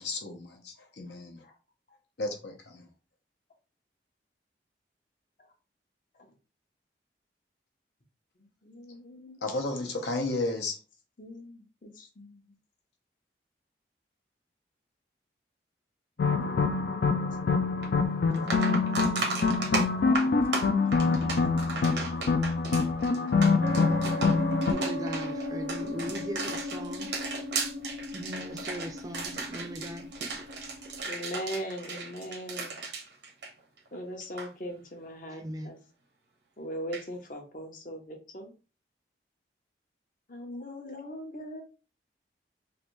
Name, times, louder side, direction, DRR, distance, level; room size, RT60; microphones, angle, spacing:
voice 1, 0.0-1.4 2.2-2.9 9.4-10.8, left 2 dB, 80° left, 0.8 m, -33 dB
voice 2, 8.6-9.5 11.2-12.5 16.2-17.2 17.5-18.0 31.0-32.7 33.9-35.8 36.6-38.5 40.3-41.6, equal, 45° left, 0.7 m, -40 dB
sound 1, 16.2-24.7, left 4 dB, 65° left, 0.3 m, -25 dB
sound 2, 17.8-17.9 18.3-34.0 34.2-34.5 36.9-37.0, right 4 dB, 80° right, 0.9 m, -36 dB
sound 3, 23.6-31.1, left 1 dB, 60° right, 0.6 m, -36 dB
voice 3, 24.7-27.1 28.1-30.1 35.3-35.7, right 1 dB, 20° right, 0.3 m, -39 dB
3.2 x 2.5 x 3.0 m
head